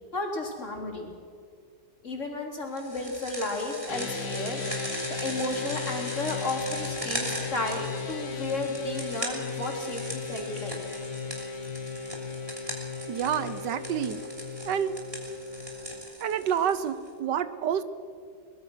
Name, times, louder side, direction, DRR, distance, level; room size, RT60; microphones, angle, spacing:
voice 1, 0.1-1.1 2.0-4.6 5.2-10.8, left 2 dB, 45° left, 1 dB, 3.8 m, -33 dB
sound 1, 2.8-17.1, right 1 dB, 20° right, 3.5 m, -39 dB
sound 2, 3.9-16.0, left 4 dB, 75° left, 2.2 m, -36 dB
voice 2, 13.1-14.2 14.6-15.0 16.2-17.8, right 9 dB, 85° right, 14 dB, 1.5 m, -28 dB
23.0 x 21.0 x 6.3 m, 2.3 s
omnidirectional pair, 1.8 m